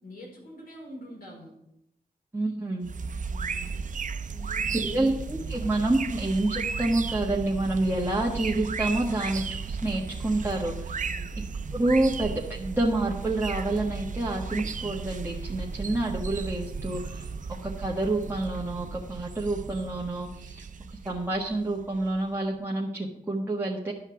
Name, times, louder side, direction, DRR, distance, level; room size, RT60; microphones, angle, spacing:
voice 1, 0.0-1.5 3.3-3.9 4.3-5.0 11.0-11.6, equal, 70° left, -2 dB, 4.8 m, -45 dB
voice 2, 2.3-2.9 4.8-11.0 11.7-17.3 17.6-20.6 21.0-23.9, right 2 dB, 15° right, -4 dB, 1.5 m, -28 dB
sound 1, 2.8-22.3, right 5 dB, 55° right, 0.6 m, -35 dB
12.0 x 5.7 x 7.0 m, 0.81 s
wide cardioid pair, 85°, 16 cm